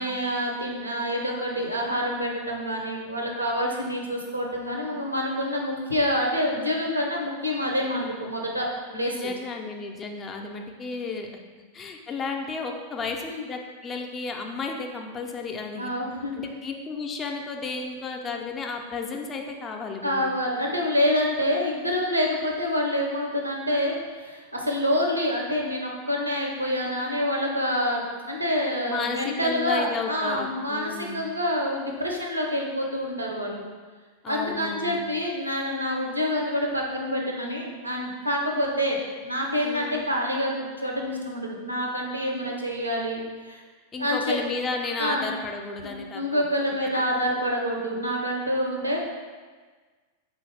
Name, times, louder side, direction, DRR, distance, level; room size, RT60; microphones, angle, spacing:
voice 1, 0.0-9.3 13.3-13.4 15.7-16.4 20.0-33.6 34.3-43.6 44.0-44.4 45.0-45.3 45.8-49.0, equal, 85° right, 0 dB, 0.5 m, -27 dB
voice 2, 8.9-11.4 11.7-15.9 16.4-20.3 28.9-31.2 34.2-35.0 39.6-40.1 43.9-46.5 46.8-47.0, left 4 dB, 25° left, 2 dB, 0.4 m, -33 dB
3.9 x 2.4 x 3.2 m, 1.4 s
figure-of-eight pair, 90°, 0 cm